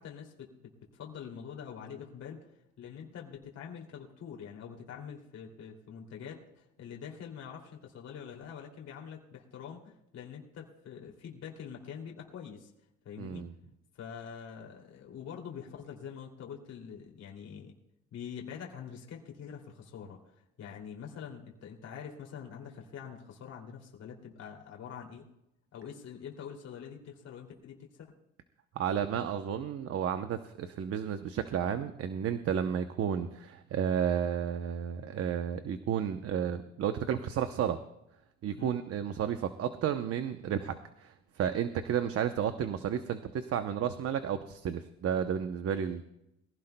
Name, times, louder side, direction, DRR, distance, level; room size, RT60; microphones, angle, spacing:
voice 1, 0.0-2.4 2.8-12.7 13.0-13.4 13.9-17.7 18.1-20.2 20.6-25.3 25.7-28.2 38.5-38.7, left 7 dB, 55° left, -1 dB, 2.7 m, -45 dB
voice 2, 13.2-13.5 28.8-37.8 38.4-40.7 41.0-46.0, right 8 dB, 50° right, 9 dB, 0.8 m, -32 dB
22.0 x 16.0 x 2.2 m, 0.83 s
cardioid pair, 125°, 30 cm